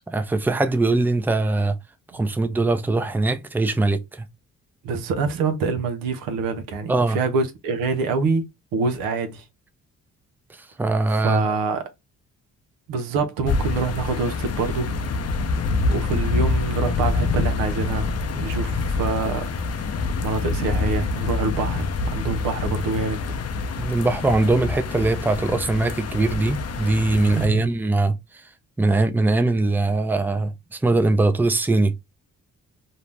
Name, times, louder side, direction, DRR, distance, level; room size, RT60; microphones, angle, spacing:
voice 1, 0.1-1.8 2.1-4.3 6.9-7.2 10.5-11.5 23.8-28.5 28.8-31.9, right 2 dB, 5° right, 0.5 m, -21 dB
voice 2, 4.8-9.4 11.1-11.8 12.9-15.0 15.9-19.5 20.2-23.2 27.4-27.7, right 4 dB, 90° right, 0.6 m, -26 dB
sound 1, 13.4-27.5, left 3 dB, 50° left, 0.6 m, -26 dB
2.6 x 2.0 x 3.2 m
supercardioid pair, 65°, 33 cm